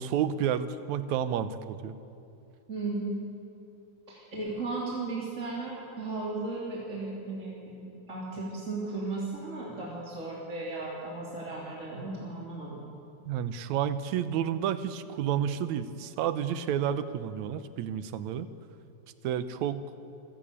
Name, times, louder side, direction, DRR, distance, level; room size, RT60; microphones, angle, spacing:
voice 1, 0.0-2.0 13.3-18.5 19.2-19.8, right 9 dB, 70° right, 12 dB, 2.1 m, -30 dB
voice 2, 2.7-3.2 4.1-12.8, right 3 dB, 25° right, -5 dB, 3.3 m, -35 dB
27.5 x 15.5 x 8.8 m, 2.6 s
omnidirectional pair, 3.7 m